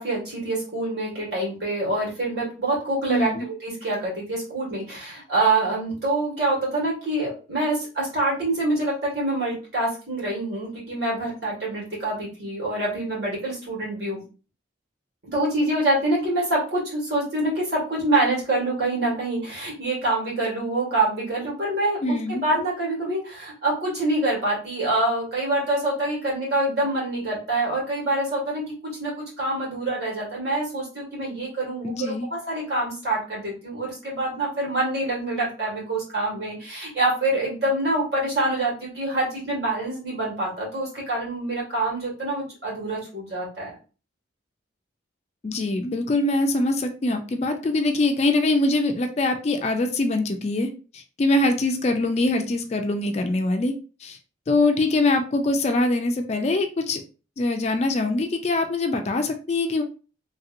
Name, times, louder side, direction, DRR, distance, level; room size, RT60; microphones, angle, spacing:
voice 1, 0.0-14.2 15.3-43.7, right 2 dB, 60° right, -5 dB, 1.8 m, -26 dB
voice 2, 3.1-3.5 22.0-22.4 31.8-32.3 45.4-50.7 51.2-53.7 54.0-54.2 54.5-57.0 57.4-59.8, left 2 dB, 35° left, 6 dB, 0.3 m, -23 dB
3.2 x 2.8 x 2.5 m, 0.35 s
head